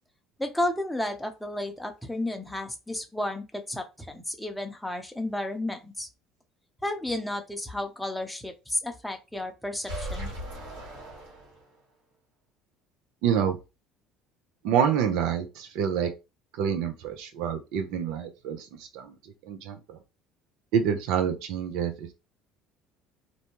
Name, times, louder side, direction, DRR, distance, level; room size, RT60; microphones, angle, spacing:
voice 1, 0.4-6.1 6.8-10.3, left 1 dB, 5° left, 0.7 m, -32 dB
sound 1, 9.8-11.9, equal, 90° right, 1.5 m, -38 dB
voice 2, 13.2-13.6 14.6-16.1 16.6-19.1 19.4-20.0 20.7-22.1, right 8 dB, 75° right, 0.6 m, -27 dB
2.6 x 2.2 x 2.9 m
supercardioid pair, 80°, 0 cm